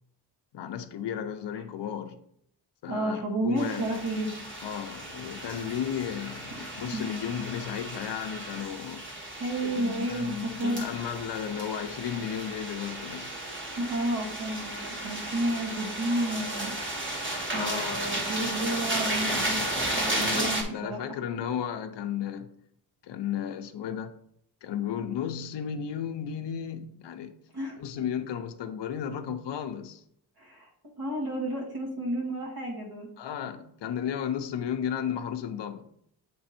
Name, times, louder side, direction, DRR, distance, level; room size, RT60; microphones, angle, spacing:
voice 1, 0.5-2.2 2.8-3.9 4.6-9.1 9.6-13.3 17.5-18.0 20.1-22.5 23.0-24.1 24.6-27.4 27.8-30.0 33.2-35.9, left 8 dB, 70° left, 0.6 m, -34 dB
voice 2, 2.9-4.3 6.9-7.1 9.4-10.9 13.7-16.7 17.5-19.6 19.9-21.0 27.5-27.8 30.4-30.7 31.0-33.1, right 1 dB, 55° right, 1.7 m, -31 dB
sound 1, 3.6-20.6, right 1 dB, 25° right, 1.5 m, -34 dB
7.8 x 3.4 x 4.3 m
wide cardioid pair, 110°, 44 cm